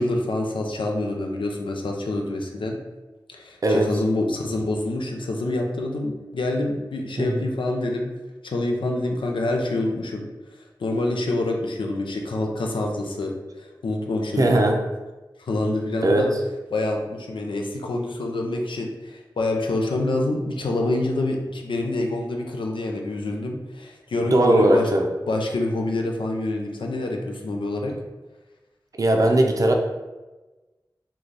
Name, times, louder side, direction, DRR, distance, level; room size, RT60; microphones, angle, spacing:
voice 1, 0.0-2.8 3.3-8.1 8.4-10.3 10.8-14.6 15.4-16.3 16.7-24.9 25.3-27.9, left 2 dB, 85° left, 1 dB, 0.5 m, -26 dB
voice 2, 14.4-14.8 16.0-16.3 24.3-25.1 28.9-29.7, right 1 dB, 45° right, 2 dB, 0.5 m, -19 dB
3.2 x 2.3 x 3.9 m, 1.2 s
wide cardioid pair, 50°, 8 cm